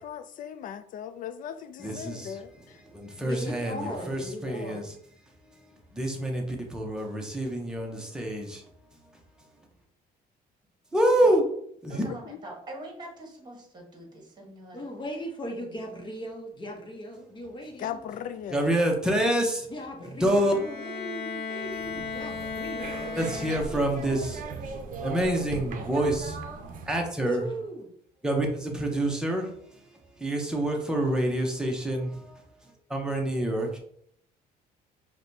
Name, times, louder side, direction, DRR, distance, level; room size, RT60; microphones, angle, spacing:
voice 1, 0.0-2.8 12.2-12.4 17.8-18.8, left 9 dB, 55° left, 0.4 m, -38 dB
voice 2, 1.8-2.4 2.9-4.8 5.9-8.6 10.9-11.4 11.8-12.0 18.5-19.7 20.2-20.5 23.2-24.4 25.0-26.4 26.9-27.4 28.2-29.5 30.2-32.2 32.9-33.8, right 1 dB, 5° right, 0.8 m, -27 dB
voice 3, 3.2-4.8 14.7-18.0 19.7-23.2 27.2-27.9, equal, 30° left, 1.0 m, -38 dB
voice 4, 11.9-14.8 21.9-22.0, right 1 dB, 25° right, 1.2 m, -44 dB
Bowed string instrument, 20.3-24.0, left 5 dB, 80° left, 0.8 m, -36 dB
sound 1, 21.6-27.1, right 4 dB, 55° right, 0.6 m, -38 dB
4.8 x 2.2 x 2.7 m
cardioid pair, 110°, 17 cm